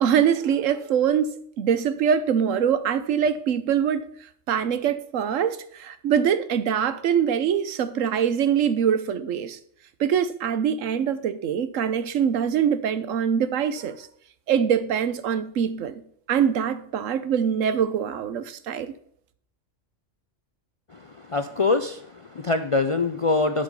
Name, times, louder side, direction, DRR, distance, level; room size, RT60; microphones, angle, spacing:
voice 1, 0.0-4.1 4.5-9.6 10.0-14.1 14.5-16.0 16.3-18.9, right 8 dB, 85° right, 1.1 m, -23 dB
voice 2, 20.9-23.6, left 3 dB, 55° left, 0.3 m, -24 dB
12.0 x 5.2 x 5.3 m
omnidirectional pair, 1.3 m